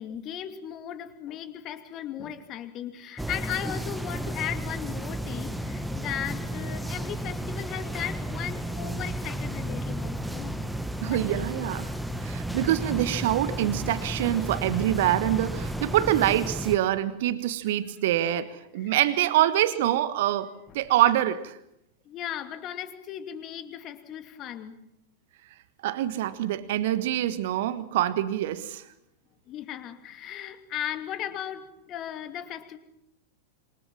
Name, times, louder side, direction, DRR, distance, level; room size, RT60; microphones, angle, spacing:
voice 1, 0.0-10.6 11.1-11.5 18.8-19.0 22.0-24.8 29.5-32.8, left 10 dB, 35° left, 9 dB, 2.7 m, -37 dB
sound 1, 3.2-16.8, right 1 dB, ahead, 1.8 m, -33 dB
voice 2, 11.0-11.9 12.2-20.5 20.7-21.6 25.8-28.8, right 13 dB, 55° right, 13 dB, 1.4 m, -25 dB
27.0 x 24.5 x 7.4 m, 0.78 s
figure-of-eight pair, 90°, 0 cm